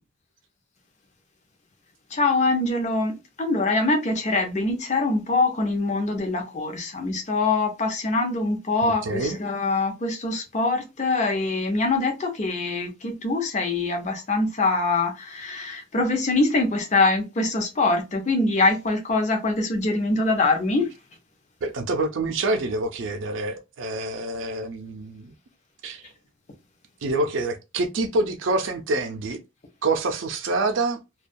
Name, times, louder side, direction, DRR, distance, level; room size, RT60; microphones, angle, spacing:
voice 1, 2.1-20.9, left 3 dB, 35° left, 0.6 m, -24 dB
voice 2, 8.8-9.4 21.6-25.3 25.8-26.1 27.0-29.4 29.8-31.0, right 2 dB, 75° right, 0.4 m, -26 dB
2.2 x 2.2 x 2.5 m
head